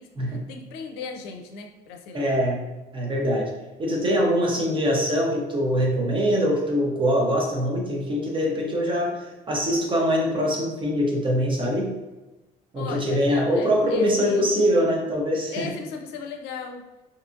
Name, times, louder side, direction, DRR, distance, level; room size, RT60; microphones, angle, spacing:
voice 1, 0.3-2.5 12.8-14.5 15.5-16.8, left 5 dB, 90° left, 3 dB, 0.4 m, -37 dB
voice 2, 2.1-2.6 2.9-3.5 3.8-12.0 12.7-15.7, equal, 30° right, 0 dB, 0.7 m, -23 dB
2.6 x 2.4 x 2.5 m, 1.1 s
cardioid pair, 110°, 17 cm